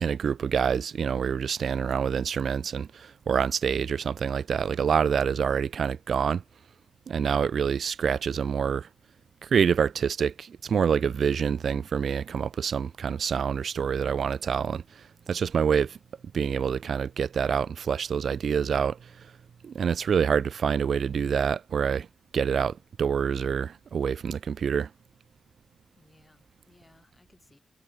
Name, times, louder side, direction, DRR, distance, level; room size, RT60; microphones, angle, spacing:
voice 1, 0.0-6.4 7.1-8.9 9.4-14.8 15.3-16.0 16.3-19.3 19.6-22.1 22.3-24.9, right 7 dB, 65° right, 0.3 m, -26 dB
voice 2, 7.3-7.7 26.0-27.6, left 2 dB, 20° left, 7.0 m, -60 dB
cardioid pair, 100°, 0 cm